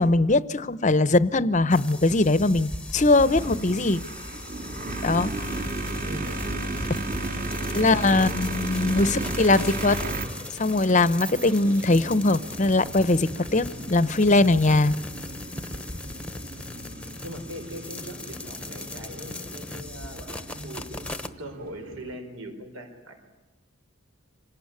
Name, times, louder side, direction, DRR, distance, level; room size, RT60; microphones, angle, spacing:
voice 1, 0.0-4.0 5.0-5.6 7.7-10.0 10.5-14.9, left 2 dB, 35° left, 16 dB, 0.8 m, -21 dB
sound 1, 1.7-21.3, left 2 dB, 5° left, 1.0 m, -38 dB
sound 2, 3.1-22.2, right 2 dB, 40° right, 2.4 m, -35 dB
voice 2, 6.0-6.8 7.8-8.3 16.6-21.1 21.4-23.2, equal, 75° right, 6 dB, 4.7 m, -40 dB
26.0 x 18.5 x 9.7 m, 1.1 s
head